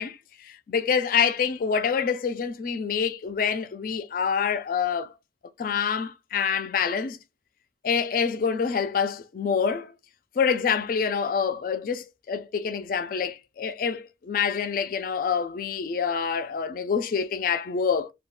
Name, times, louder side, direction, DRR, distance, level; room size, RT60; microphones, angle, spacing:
voice 1, 0.0-5.1 5.6-7.2 7.8-9.9 10.4-18.1, left 6 dB, 50° left, 0.3 m, -26 dB
2.3 x 2.3 x 3.6 m
head